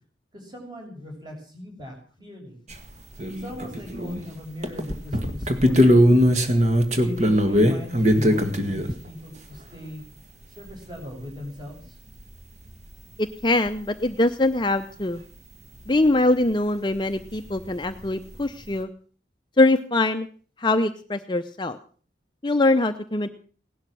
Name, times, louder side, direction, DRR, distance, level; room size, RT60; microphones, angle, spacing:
voice 1, 0.3-2.6 3.4-6.0 7.0-10.0 10.5-12.0, left 1 dB, 25° right, 1 dB, 7.0 m, -38 dB
sound 1, 2.7-2.8 3.2-4.2 4.6-8.9 11.6-11.7 11.8-11.9 13.0-13.1 13.7-13.8 17.4-17.5 17.6-18.0, equal, 40° right, 1.9 m, -20 dB
voice 2, 13.2-15.2 15.9-18.9 19.6-20.3 20.6-21.8 22.4-23.3, left 2 dB, 25° left, 8 dB, 0.7 m, -22 dB
18.0 x 12.0 x 6.2 m, 0.43 s
head